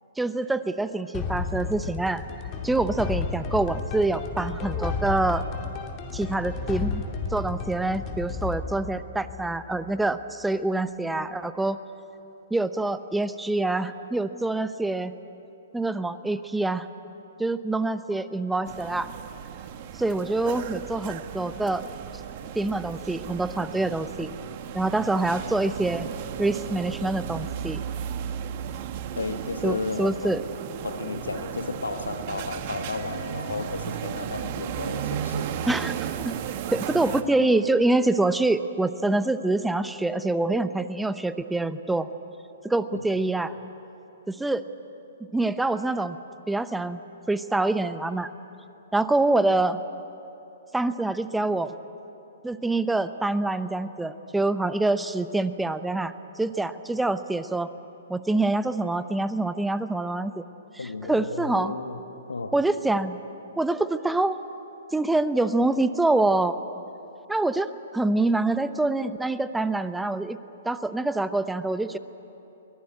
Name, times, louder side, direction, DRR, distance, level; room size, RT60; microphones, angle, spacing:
voice 1, 0.2-2.2 2.6-5.4 6.1-7.0 7.3-11.8 12.5-15.1 15.7-16.9 17.4-19.1 19.9-21.8 22.5-24.3 24.7-26.1 26.4-27.8 29.6-30.4 35.7-35.9 36.2-36.3 36.7-42.1 42.6-43.6 44.3-44.6 45.3-46.2 46.5-47.0 47.3-48.3 48.9-49.8 50.7-51.8 52.4-57.8 58.1-60.4 60.7-61.7 62.5-63.2 63.6-64.4 64.9-66.6 67.3-70.4 70.6-72.0, right 2 dB, 5° right, 12 dB, 0.8 m, -25 dB
sound 1, 1.1-10.0, left 4 dB, 30° left, 2.6 m, -32 dB
sound 2, 18.6-37.2, right 9 dB, 45° right, 1.5 m, -35 dB
voice 2, 29.2-30.4 30.8-35.5 42.9-43.0 60.8-62.0 62.3-62.6, left 3 dB, 85° left, 8 dB, 1.3 m, -33 dB
23.5 x 18.0 x 9.8 m, 2.9 s
hypercardioid pair, 125°, 0 cm